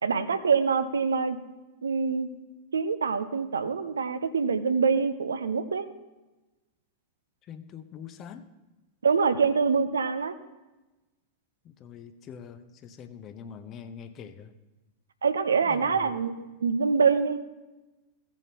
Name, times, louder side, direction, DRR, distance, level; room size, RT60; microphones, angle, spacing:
voice 1, 0.0-1.4 1.8-2.3 2.7-5.9 9.0-10.3 15.2-17.4, right 5 dB, 70° right, 12 dB, 0.5 m, -25 dB
voice 2, 7.4-8.5 11.6-14.5 15.6-16.1, left 7 dB, 35° left, 10 dB, 0.7 m, -44 dB
16.5 x 7.1 x 3.0 m, 1.1 s
figure-of-eight pair, 90°, 0 cm